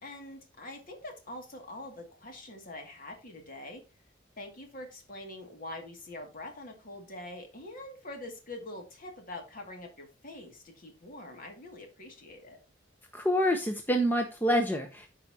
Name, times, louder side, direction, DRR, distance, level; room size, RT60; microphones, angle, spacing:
voice 1, 0.0-3.8 4.4-12.6, left 1 dB, 45° left, 3 dB, 2.3 m, -44 dB
voice 2, 13.1-15.1, equal, 10° left, 3 dB, 0.8 m, -27 dB
13.5 x 4.9 x 2.8 m, 0.28 s
head